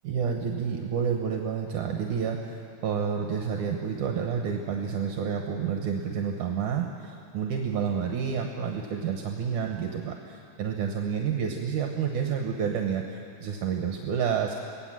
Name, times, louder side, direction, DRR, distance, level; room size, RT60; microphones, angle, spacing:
voice 1, 0.0-14.6, right 7 dB, 75° right, 2 dB, 2.6 m, -29 dB
27.0 x 18.0 x 7.6 m, 2.7 s
omnidirectional pair, 3.6 m